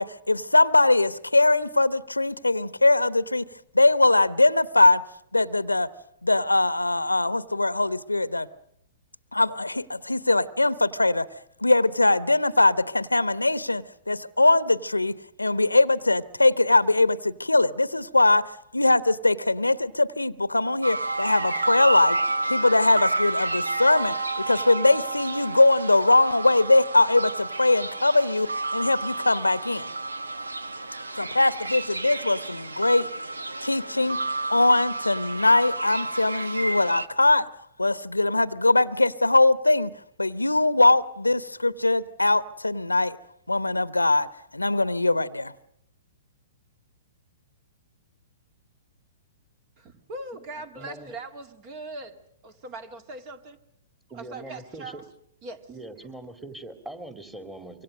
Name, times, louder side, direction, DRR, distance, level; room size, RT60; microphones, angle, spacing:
voice 1, 0.0-3.4 3.7-5.0 5.3-5.9 6.2-8.5 9.3-11.3 11.6-22.2 22.5-29.9 31.2-33.1 33.6-34.2 34.5-37.5 37.8-39.9 40.2-43.2 43.5-44.3 44.5-45.5, left 2 dB, 85° left, 0.9 m, -21 dB
sound 1, 20.8-37.1, right 2 dB, 75° right, 1.3 m, -30 dB
voice 2, 49.8-53.6 54.1-55.0 55.4-55.7, right 2 dB, 35° right, 2.1 m, -40 dB
voice 3, 50.7-51.1 54.1-55.0 55.7-57.8, right 2 dB, 10° right, 2.5 m, -41 dB
25.5 x 24.0 x 6.4 m
figure-of-eight pair, 110°, 0 cm